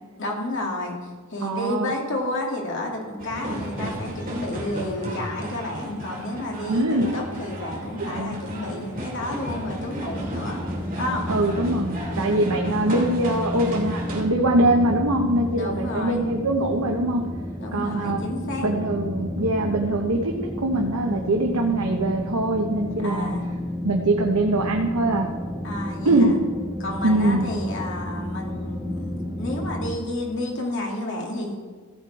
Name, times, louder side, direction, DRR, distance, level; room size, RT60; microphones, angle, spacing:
voice 1, 0.2-0.9 1.3-10.6 11.0-11.3 15.6-16.2 17.6-18.7 23.0-23.4 25.6-26.4 26.8-31.6, left 1 dB, 55° left, -1 dB, 2.3 m, -31 dB
voice 2, 1.4-1.9 6.7-7.1 8.0-8.4 11.3-17.2 17.7-18.2 18.6-23.3 23.8-25.3 26.0-26.4 27.0-27.5, right 1 dB, 80° right, 1 dB, 1.1 m, -23 dB
sound 1, 3.2-14.2, right 1 dB, 40° right, 2.8 m, -34 dB
sound 2, 10.0-30.0, equal, 5° right, 1.0 m, -32 dB
15.5 x 7.9 x 4.7 m, 1.5 s
head